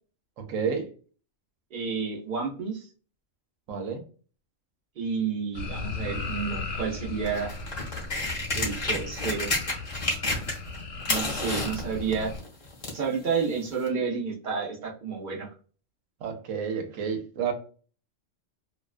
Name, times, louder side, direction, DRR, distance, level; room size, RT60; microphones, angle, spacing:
voice 1, 0.4-0.9 3.7-4.0 16.2-17.5, right 6 dB, 90° right, 1.0 m, -30 dB
voice 2, 1.7-2.9 5.0-7.5 8.5-9.5 11.1-12.3 12.9-15.5, right 5 dB, 55° right, 0.6 m, -30 dB
sound 1, 5.5-12.4, left 3 dB, 70° left, 0.9 m, -37 dB
sound 2, 7.2-10.8 11.0-13.1 13.9-14.0, left 2 dB, 40° left, 0.9 m, -30 dB
2.4 x 2.2 x 2.3 m
omnidirectional pair, 1.3 m